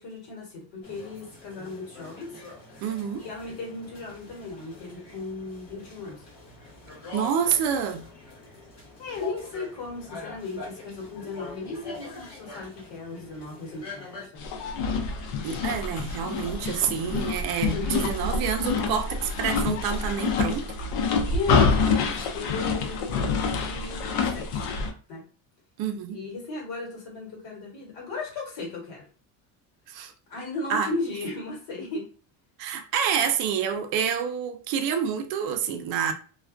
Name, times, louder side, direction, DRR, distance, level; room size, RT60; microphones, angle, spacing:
voice 1, 0.0-2.3 3.2-6.2 9.0-14.5 17.7-18.1 21.2-24.7 25.1-25.2 26.1-29.0 30.3-32.0, left 3 dB, 60° left, 1.2 m, -36 dB
sound 1, 0.8-14.3, left 2 dB, 35° left, 0.9 m, -44 dB
voice 2, 2.8-3.3 7.1-8.1 15.4-20.7 25.8-26.2 29.9-30.1 30.7-30.9 32.6-36.1, right 7 dB, 50° right, 0.5 m, -28 dB
sound 2, 14.4-24.9, left 5 dB, 85° left, 0.7 m, -27 dB
2.3 x 2.2 x 2.4 m
cardioid pair, 150°, 49 cm